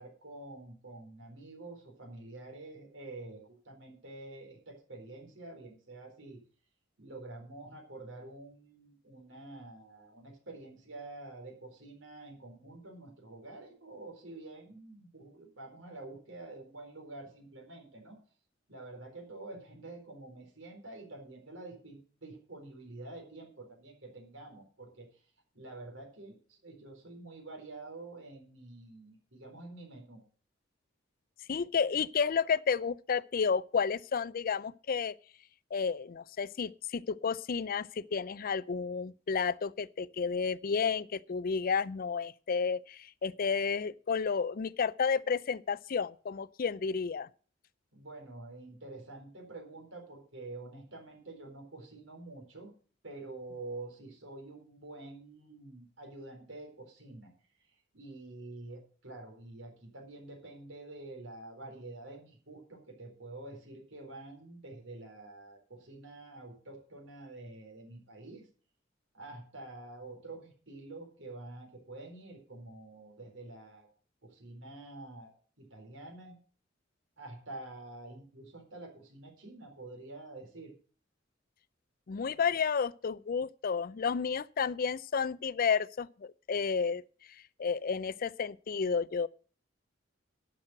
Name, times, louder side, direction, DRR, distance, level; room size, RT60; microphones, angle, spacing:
voice 1, 0.0-6.4 7.0-18.2 18.7-25.1 25.5-30.2 47.9-52.7 53.0-57.3 57.9-68.5 69.1-73.9 74.2-76.4 77.2-80.7, right 2 dB, 80° right, 4.3 m, -48 dB
voice 2, 31.5-35.1 35.7-47.3 82.1-87.0 87.6-89.3, left 6 dB, 50° left, 0.4 m, -31 dB
11.5 x 6.3 x 7.8 m
head